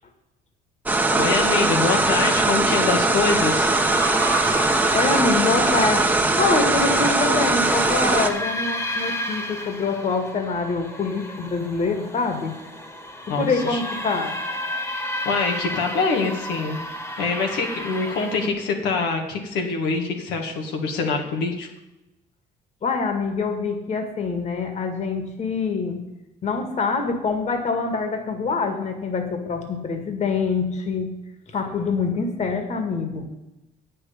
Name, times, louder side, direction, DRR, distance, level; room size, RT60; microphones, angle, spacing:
sound 1, 0.8-8.3, right 2 dB, 10° right, 1.1 m, -20 dB
voice 1, 1.1-3.7 13.3-13.8 15.3-16.8 17.2-21.7, left 4 dB, 90° left, 2 dB, 1.9 m, -24 dB
sound 2, 3.3-18.5, equal, 15° left, 1.6 m, -32 dB
voice 2, 4.9-6.1 6.4-12.6 13.3-14.4 22.8-26.0 26.4-31.1 31.5-33.3, left 4 dB, 40° left, 6 dB, 2.0 m, -25 dB
8.8 x 6.6 x 8.6 m, 0.96 s
cardioid pair, 110°, 17 cm